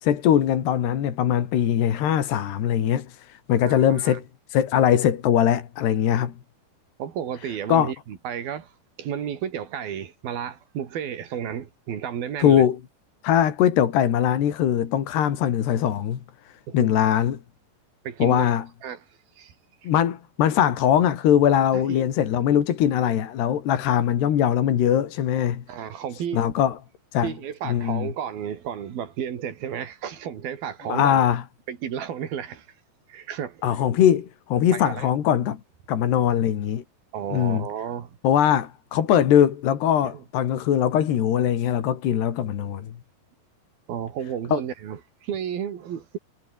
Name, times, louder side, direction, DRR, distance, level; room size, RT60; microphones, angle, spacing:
voice 1, 0.0-3.1 3.5-4.2 4.5-6.3 7.7-7.9 12.4-12.8 13.2-16.2 16.7-17.4 18.2-18.6 19.9-25.6 26.3-26.8 27.1-27.3 27.7-28.1 30.9-31.4 33.6-35.6 35.9-36.8 37.3-37.6 38.2-42.9 44.5-44.6, left 10 dB, 80° left, 4.5 m, -21 dB
voice 2, 3.6-4.2 7.0-8.7 9.0-12.7 16.7-17.0 18.0-18.5 18.8-19.1 19.4-19.5 19.8-19.9 21.7-22.1 25.7-26.4 27.2-31.2 31.7-32.7 33.1-33.6 34.7-35.1 37.1-38.1 40.1-40.2 43.9-46.2, right 9 dB, 65° right, 4.3 m, -32 dB
omnidirectional pair, 4.8 m